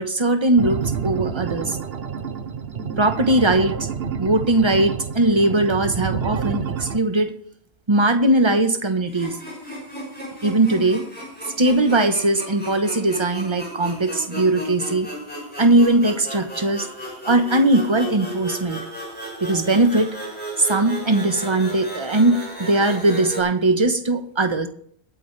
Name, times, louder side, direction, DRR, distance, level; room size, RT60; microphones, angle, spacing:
voice 1, 0.0-1.8 3.0-3.9 4.2-7.3 7.9-9.4 10.4-11.0 11.6-15.1 15.6-16.9 17.2-18.8 19.4-20.1 20.6-24.7, right 2 dB, 25° right, 7 dB, 1.1 m, -19 dB
sound 1, 0.6-7.0, right 6 dB, 65° right, 1.1 m, -28 dB
sound 2, 9.1-23.4, right 1 dB, 10° left, 6.8 m, -34 dB
21.5 x 8.9 x 3.3 m, 0.63 s
omnidirectional pair, 1.1 m